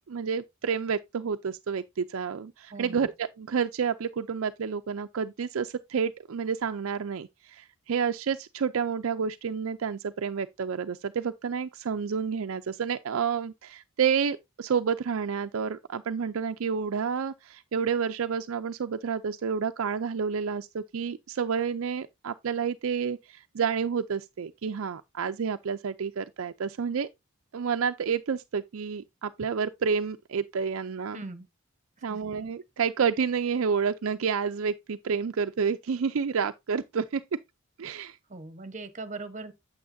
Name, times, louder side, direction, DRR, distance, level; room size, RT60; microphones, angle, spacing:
voice 1, 0.1-27.1 27.5-31.2 32.0-37.2 37.8-38.2, right 6 dB, 65° right, 0.4 m, -29 dB
voice 2, 2.7-3.1 31.1-31.5 32.1-32.2 38.3-39.5, right 3 dB, 35° right, 1.0 m, -40 dB
8.7 x 7.7 x 2.6 m
head